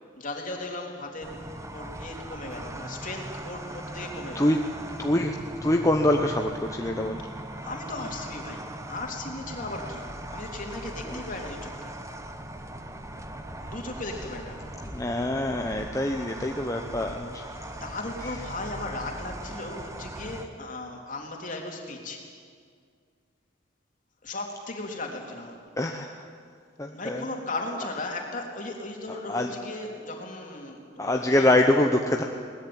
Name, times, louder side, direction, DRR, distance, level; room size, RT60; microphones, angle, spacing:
voice 1, 0.2-1.4 1.7-4.5 7.6-11.9 13.6-14.7 17.8-22.3 24.2-25.6 26.9-31.5, left 2 dB, 45° left, 1 dB, 3.3 m, -36 dB
sound 1, 1.2-20.5, right 1 dB, 15° right, 1.2 m, -39 dB
voice 2, 5.0-5.3 5.6-7.2 11.1-11.2 14.9-17.5 25.8-26.1 26.8-27.2 29.3-29.5 31.0-32.2, left 1 dB, 15° left, 2 dB, 1.0 m, -24 dB
21.5 x 19.5 x 8.8 m, 2.1 s
head